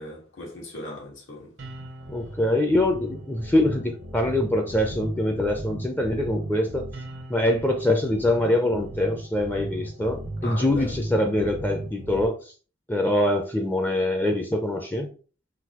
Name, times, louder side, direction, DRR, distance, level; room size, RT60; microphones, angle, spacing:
voice 1, 0.0-1.5 10.4-10.9, left 1 dB, 85° left, 1.5 m, -38 dB
sound 1, 1.6-12.3, right 1 dB, 85° right, 0.8 m, -37 dB
voice 2, 2.1-6.9 7.3-12.5 12.9-15.1, left 1 dB, 10° left, 0.4 m, -24 dB
3.9 x 2.6 x 2.9 m
head